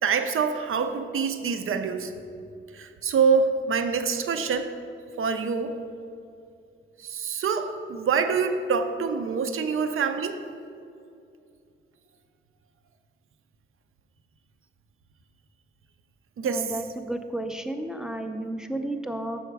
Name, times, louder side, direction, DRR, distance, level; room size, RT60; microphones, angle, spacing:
voice 1, 0.0-2.1 2.7-4.7 5.2-5.7 7.0-10.4 16.4-16.7, right 5 dB, 80° right, 7 dB, 0.5 m, -25 dB
voice 2, 16.4-19.4, right 1 dB, 5° right, 6 dB, 0.4 m, -32 dB
7.0 x 5.7 x 4.6 m, 2.5 s
wide cardioid pair, 150°, 21 cm